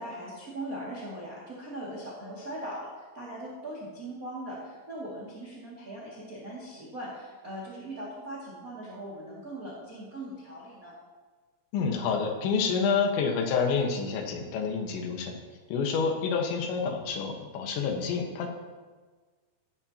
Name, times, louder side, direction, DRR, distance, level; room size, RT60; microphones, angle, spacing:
voice 1, 0.0-2.9 3.1-10.9, right 1 dB, 30° right, -6 dB, 1.6 m, -40 dB
voice 2, 11.7-15.4 15.7-18.5, left 5 dB, 80° left, 2 dB, 3.7 m, -28 dB
15.0 x 11.0 x 2.9 m, 1.4 s
omnidirectional pair, 5.2 m